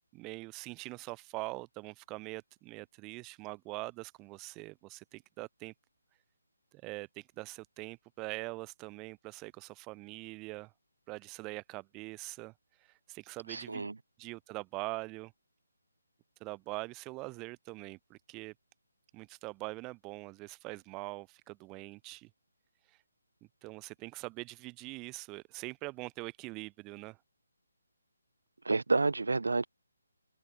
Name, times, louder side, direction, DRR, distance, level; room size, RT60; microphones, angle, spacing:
voice 1, 0.1-5.7 6.8-10.7 11.1-12.5 13.1-13.9 14.2-15.3 16.4-18.5 19.1-22.3 23.6-27.2, right 23 dB, 15° right, 0.8 m, -43 dB
voice 2, 13.5-13.9 28.7-29.7, right 3 dB, 60° right, 0.5 m, -29 dB
figure-of-eight pair, 145°, 0 cm